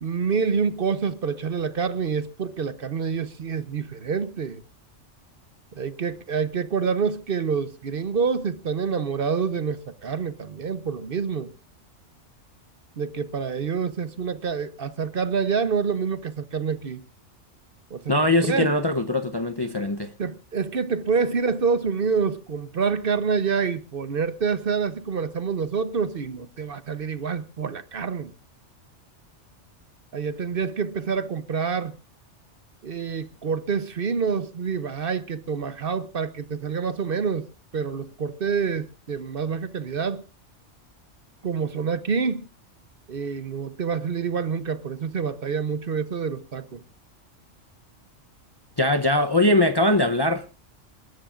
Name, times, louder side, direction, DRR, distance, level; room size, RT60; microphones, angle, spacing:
voice 1, 0.0-4.6 5.8-11.5 13.0-17.0 17.9-18.7 20.2-28.3 30.1-31.9 32.8-37.5 37.7-40.2 41.4-42.5 43.1-46.8, right 5 dB, 55° right, 1.0 m, -27 dB
voice 2, 18.1-20.1 48.8-50.4, left 1 dB, 25° left, 0.6 m, -21 dB
28.0 x 12.5 x 2.5 m
omnidirectional pair, 1.2 m